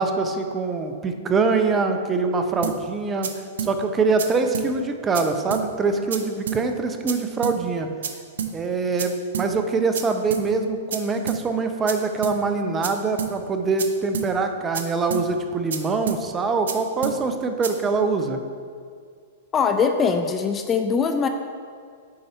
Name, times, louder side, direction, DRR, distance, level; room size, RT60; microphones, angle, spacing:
voice 1, 0.0-7.9 8.5-18.4, right 4 dB, 20° right, 6 dB, 0.7 m, -24 dB
sound 1, 2.6-2.8 3.2-3.3 3.6-3.7 4.2-4.3 4.5-4.7 5.1-5.2 5.5-5.6 6.1-6.2 6.5-6.6 7.1-7.2 7.4-7.6 8.0-8.1 8.4-8.5 9.0-9.1 9.3-9.5 9.9-10.0 10.3-10.4 10.9-11.0 11.3-11.4 11.9-12.0 12.2-12.4 12.8-12.9 13.2-13.3 13.8-13.9 14.1-14.3 14.7-14.8 15.1-15.2 15.7-15.8 16.1-16.2 16.7-16.8 17.0-17.2 17.6-17.7, right 8 dB, 75° right, 0.7 m, -28 dB
voice 2, 19.5-21.3, left 5 dB, 25° left, 6 dB, 0.4 m, -21 dB
8.6 x 4.1 x 4.4 m, 2.1 s
hypercardioid pair, 115°, 0 cm